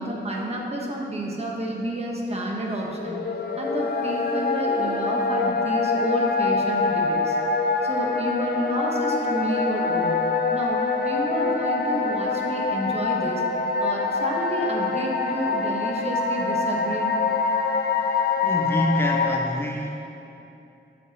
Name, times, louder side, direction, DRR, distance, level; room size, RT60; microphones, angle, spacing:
voice 1, 0.0-3.2 3.6-7.4 7.8-10.2 10.5-13.4 13.8-17.1, right 1 dB, 35° right, -1 dB, 1.1 m, -30 dB
sound 1, 2.9-19.4, left 4 dB, 60° left, 0.6 m, -25 dB
voice 2, 18.4-19.9, equal, 15° left, 0 dB, 0.5 m, -26 dB
8.7 x 7.0 x 4.1 m, 2.8 s
wide cardioid pair, 150°, 18 cm